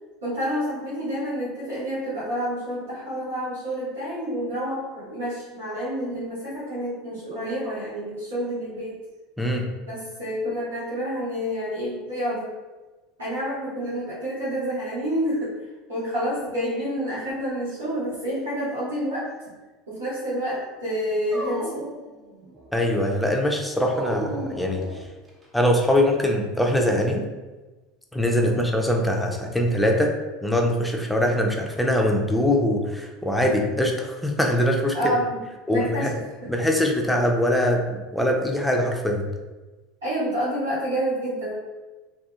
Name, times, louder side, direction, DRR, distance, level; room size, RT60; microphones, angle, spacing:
voice 1, 0.2-9.0 9.9-12.5 13.2-15.5 15.9-19.3 19.9-21.8 28.4-28.7 34.9-35.4 35.7-36.5 40.0-41.5, equal, 85° right, -12 dB, 1.2 m, -28 dB
Dog, 21.3-22.7 23.8-25.4, right 1 dB, 25° right, 0.9 m, -34 dB
voice 2, 22.7-24.9 25.5-27.3 28.1-30.1 30.4-35.0 35.7-36.1 36.5-39.3, left 1 dB, 5° left, 1 dB, 0.5 m, -22 dB
2.7 x 2.6 x 2.4 m, 1.2 s
hypercardioid pair, 75°, 0 cm